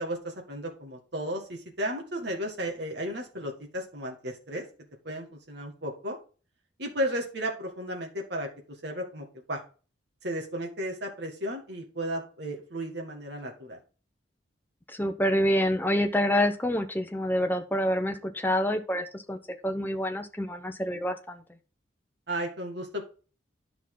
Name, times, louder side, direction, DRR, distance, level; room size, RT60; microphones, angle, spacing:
voice 1, 0.0-4.6 5.0-6.2 6.8-8.5 8.8-9.6 10.2-13.8 22.3-23.1, equal, 65° right, 1 dB, 1.9 m, -34 dB
voice 2, 14.9-19.4 19.6-21.4, equal, 10° left, 6 dB, 0.8 m, -27 dB
9.9 x 6.0 x 3.8 m, 0.37 s
head